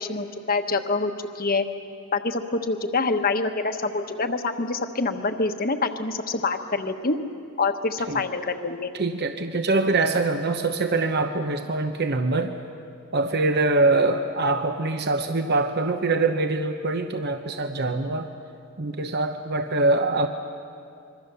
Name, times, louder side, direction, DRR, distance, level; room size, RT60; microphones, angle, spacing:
voice 1, 0.0-1.6 2.1-7.2 7.6-8.9, left 3 dB, 40° left, 7 dB, 1.2 m, -26 dB
voice 2, 8.9-12.5 13.1-18.3 18.8-20.3, right 3 dB, 50° right, 6 dB, 0.9 m, -24 dB
25.5 x 23.5 x 6.9 m, 2.4 s
head